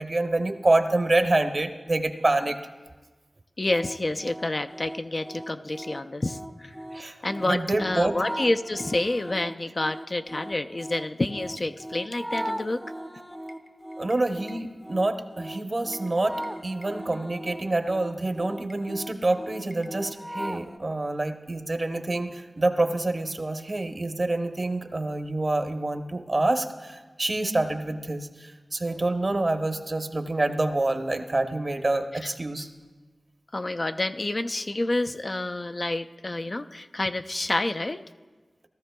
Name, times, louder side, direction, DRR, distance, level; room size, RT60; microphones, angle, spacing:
voice 1, 0.0-2.6 6.9-8.1 14.0-32.7, right 2 dB, 50° right, 6 dB, 0.8 m, -27 dB
voice 2, 3.6-6.7 7.2-12.8 33.5-38.0, left 2 dB, 45° left, 7 dB, 0.4 m, -28 dB
sound 1, 3.7-20.8, equal, ahead, 0.6 m, -39 dB
17.5 x 13.0 x 2.2 m, 1.3 s
cardioid pair, 40°, 0 cm